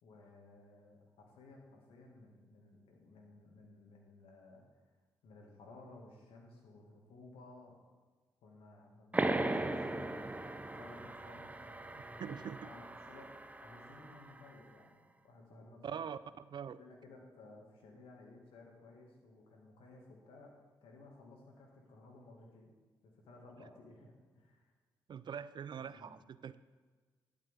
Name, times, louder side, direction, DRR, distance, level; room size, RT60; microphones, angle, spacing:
voice 1, 0.0-4.6 5.2-7.8 8.4-10.1 10.7-16.0 16.8-20.5 20.8-22.7 23.0-24.7 25.8-26.1, left 2 dB, 75° left, 1 dB, 2.3 m, -57 dB
sound 1, 9.1-14.4, right 2 dB, 15° right, 0.8 m, -38 dB
voice 2, 12.2-12.6 15.8-16.2 16.5-16.8 25.1-26.6, right 7 dB, 50° right, 15 dB, 0.5 m, -43 dB
11.5 x 9.1 x 3.7 m, 1.4 s
hypercardioid pair, 45°, 10 cm